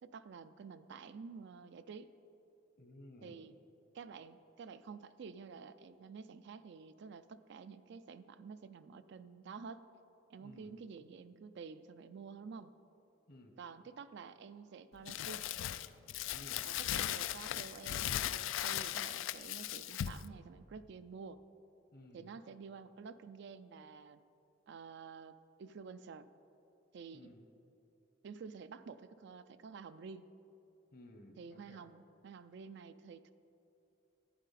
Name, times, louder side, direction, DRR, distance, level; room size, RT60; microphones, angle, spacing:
voice 1, 0.0-2.1 3.2-3.6 3.9-9.8 10.3-12.7 13.6-15.5 16.6-21.4 22.1-24.2 24.7-26.3 26.9-27.3 28.2-30.2 31.4-33.3, right 5 dB, 65° right, 12 dB, 0.4 m, -50 dB
voice 2, 2.8-3.4 10.4-10.7 13.3-13.5 16.3-16.6 21.9-22.4 27.1-27.5 30.9-31.8, left 1 dB, 50° left, 5 dB, 1.0 m, -56 dB
Crumpling crinkling, 15.1-20.3, left 12 dB, 80° left, 0.3 m, -38 dB
11.5 x 9.0 x 4.2 m, 2.8 s
head